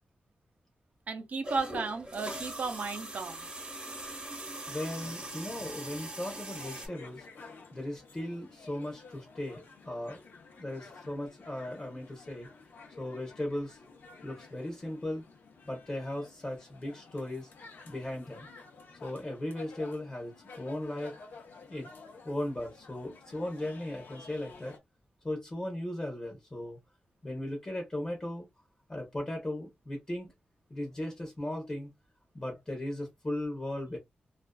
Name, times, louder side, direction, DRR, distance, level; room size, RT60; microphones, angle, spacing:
voice 1, 1.1-3.5, right 4 dB, 55° right, 0.6 m, -34 dB
sound 1, 1.4-6.9, right 1 dB, 30° right, 0.9 m, -41 dB
voice 2, 4.7-7.3 7.7-10.2 10.6-12.5 13.0-13.8 14.2-15.2 15.6-17.5 17.9-18.5 19.0-21.1 21.7-24.8 25.2-26.8 27.2-28.5 28.9-30.3 30.7-31.9 32.3-34.0, left 1 dB, 20° left, 0.8 m, -37 dB
sound 2, 6.5-24.8, left 4 dB, 85° left, 0.6 m, -52 dB
2.4 x 2.3 x 2.2 m
wide cardioid pair, 140°, 3 cm